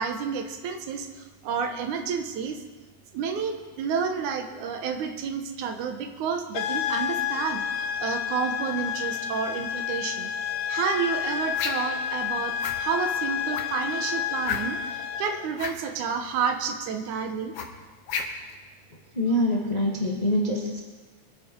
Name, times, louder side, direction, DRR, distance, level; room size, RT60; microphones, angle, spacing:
voice 1, 0.0-2.6 3.1-10.3 10.7-17.5, right 6 dB, 80° right, 6 dB, 2.5 m, -30 dB
sound 1, 6.5-15.5, left 9 dB, 75° left, 2.0 m, -30 dB
sound 2, 11.5-12.0 12.6-12.8 13.5-13.8 14.4-14.9 15.5-15.8 17.5-18.5, left 6 dB, 60° left, 1.8 m, -32 dB
voice 2, 19.1-20.8, left 1 dB, 20° left, -2 dB, 1.2 m, -25 dB
23.0 x 9.5 x 4.5 m, 1.3 s
omnidirectional pair, 3.4 m